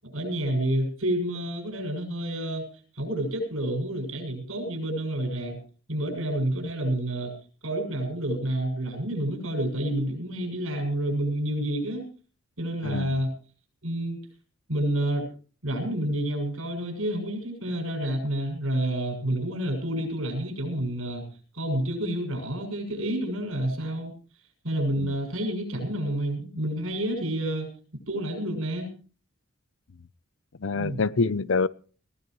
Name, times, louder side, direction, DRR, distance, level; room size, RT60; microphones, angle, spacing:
voice 1, 0.0-2.7 2.9-5.6 5.9-7.3 7.6-12.1 12.6-13.3 13.8-14.2 14.7-15.3 15.6-21.2 21.5-24.1 24.6-27.7 28.1-28.9 30.7-31.0, right 1 dB, 75° right, 7.0 m, -29 dB
voice 2, 12.8-13.1 25.0-25.1 30.6-31.7, left 4 dB, 65° left, 0.6 m, -26 dB
21.0 x 17.0 x 3.1 m
head